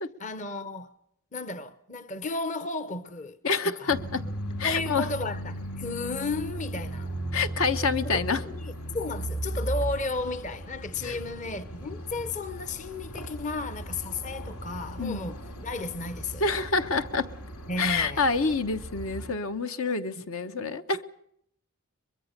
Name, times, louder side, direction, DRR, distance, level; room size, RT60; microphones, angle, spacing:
voice 1, 0.2-0.9 1.3-3.4 3.6-4.0 4.6-7.1 8.0-16.4 17.7-18.2 19.8-20.2, left 3 dB, 35° left, 0.8 m, -34 dB
voice 2, 3.4-4.2 4.6-5.1 7.3-8.4 11.0-11.2 15.0-15.3 16.4-17.3 17.8-21.0, left 4 dB, 70° left, 1.0 m, -27 dB
sound 1, 3.9-19.3, right 1 dB, 90° left, 2.9 m, -37 dB
23.5 x 22.0 x 6.7 m
head